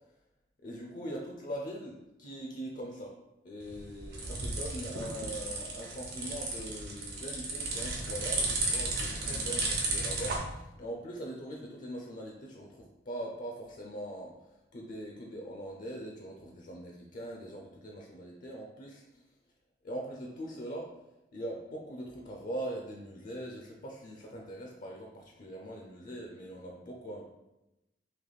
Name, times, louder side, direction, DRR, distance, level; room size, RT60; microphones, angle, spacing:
voice 1, 0.6-3.2 3.4-19.3 19.8-20.9 21.3-27.2, right 1 dB, 50° left, 0 dB, 0.5 m, -42 dB
sound 1, 3.6-10.4, right 2 dB, 60° right, 0.9 m, -34 dB
3.3 x 2.9 x 4.0 m, 0.94 s
head